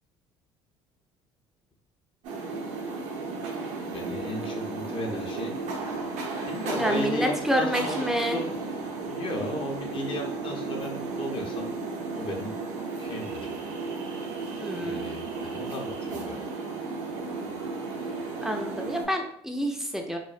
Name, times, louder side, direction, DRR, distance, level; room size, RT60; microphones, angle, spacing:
sound 1, 2.2-19.1, right 3 dB, 65° right, 0.6 m, -34 dB
voice 1, 3.9-5.5 6.5-8.5 9.1-11.7 12.1-12.5 13.0-13.5 14.8-16.4, left 1 dB, 40° left, 1 dB, 0.6 m, -34 dB
voice 2, 6.7-8.4 14.6-15.1 18.4-20.2, equal, 5° right, 3 dB, 0.4 m, -28 dB
2.5 x 2.1 x 2.4 m, 0.65 s
hypercardioid pair, 70°, 14 cm